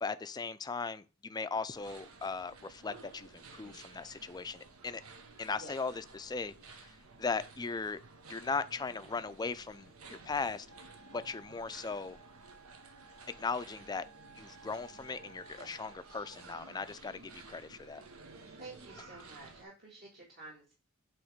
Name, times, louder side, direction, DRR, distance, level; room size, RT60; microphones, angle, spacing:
voice 1, 0.0-5.0 5.4-6.9 7.2-8.0 8.3-10.7 11.1-12.2 13.4-14.1 14.4-18.0, left 4 dB, 20° left, 0.4 m, -38 dB
sound 1, 1.7-19.6, right 3 dB, 85° right, 1.0 m, -54 dB
Wind instrument woodwind instrument, 10.7-16.1, right 3 dB, 70° right, 3.4 m, -58 dB
voice 2, 18.6-20.7, right 2 dB, 50° right, 1.9 m, -50 dB
7.9 x 3.1 x 5.0 m
head